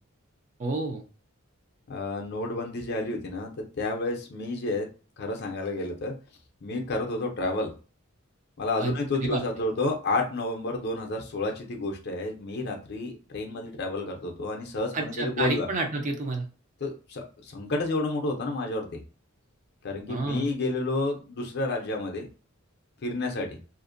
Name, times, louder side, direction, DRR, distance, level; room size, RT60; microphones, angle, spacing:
voice 1, 0.6-1.0 8.8-8.9 9.2-9.4 14.9-16.5 20.1-20.5, right 3 dB, 35° right, 4 dB, 0.4 m, -29 dB
voice 2, 1.9-4.9 5.2-6.1 6.6-7.7 8.6-15.7 16.8-19.0 19.8-22.3 23.0-23.6, left 2 dB, 50° left, 2 dB, 0.5 m, -30 dB
2.5 x 2.1 x 2.5 m, 0.36 s
head